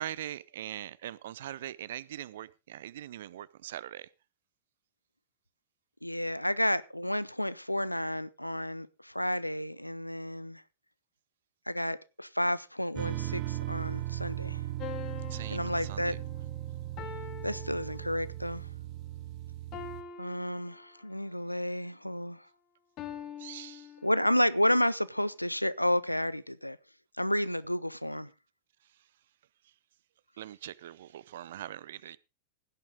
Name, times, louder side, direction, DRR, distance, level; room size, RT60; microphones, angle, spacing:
voice 1, 0.0-4.1 15.3-16.2 23.4-23.9 29.6-29.7 30.4-32.2, right 12 dB, 60° right, 0.6 m, -42 dB
voice 2, 6.0-10.6 11.7-14.6 15.5-16.1 17.4-18.7 20.2-22.4 24.0-26.8 27.2-28.3, left 1 dB, 90° left, 0.6 m, -31 dB
sound 1, 13.0-20.0, right 15 dB, 40° right, 1.1 m, -37 dB
sound 2, 14.8-18.5 19.7-21.3 23.0-24.5, left 8 dB, 35° left, 2.0 m, -45 dB
16.0 x 10.5 x 3.8 m
figure-of-eight pair, 90°, 0 cm